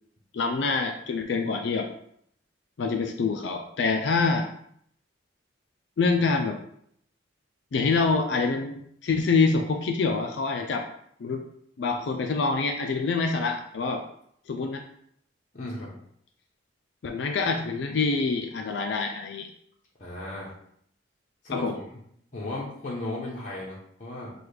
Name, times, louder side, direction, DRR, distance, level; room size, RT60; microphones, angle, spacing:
voice 1, 0.3-1.9 2.8-4.5 6.0-6.6 7.7-10.9 11.2-11.4 11.8-14.0 14.5-14.8 17.0-19.5 21.5-21.8, left 4 dB, 65° left, 4 dB, 0.4 m, -26 dB
voice 2, 15.5-15.9 20.0-20.5 21.4-21.7 22.3-24.3, left 2 dB, 40° left, -5 dB, 0.8 m, -35 dB
6.2 x 2.3 x 3.3 m, 0.69 s
head